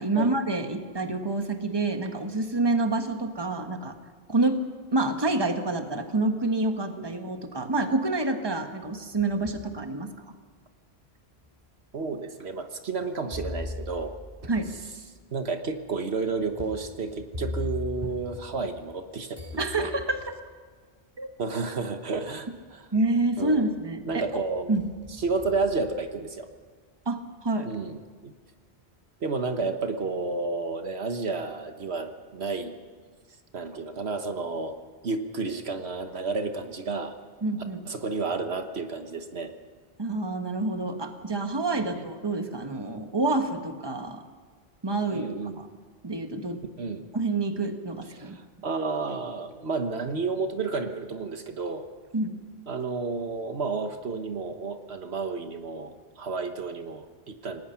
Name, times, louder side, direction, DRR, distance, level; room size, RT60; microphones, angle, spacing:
voice 1, 0.0-3.9 4.3-4.6 4.9-10.1 14.5-14.7 19.6-20.4 21.2-21.3 22.9-24.2 24.7-24.8 27.0-27.7 37.4-37.8 40.0-44.2 44.8-45.3 45.6-45.7 46.0-46.6 47.1-48.4 52.1-52.4, right 2 dB, 25° right, 6 dB, 1.5 m, -27 dB
sound 1, 8.8-9.7 10.3-10.4 11.3-11.4 13.3-19.0 19.3-20.4 21.5-21.6 22.1-22.6 22.9-23.7 24.1-26.5, left 2 dB, 40° right, 8.3 m, -40 dB
voice 2, 11.9-14.2 15.3-19.9 21.4-22.9 23.4-23.7 24.1-24.7 25.2-26.5 27.6-28.3 29.2-32.7 33.5-34.8 35.0-37.2 37.9-39.5 41.9-42.1 45.1-45.6 46.8-47.0 48.1-51.9 52.7-57.6, right 4 dB, 70° right, 7 dB, 1.5 m, -31 dB
28.0 x 19.0 x 5.8 m, 1.5 s
omnidirectional pair, 1.1 m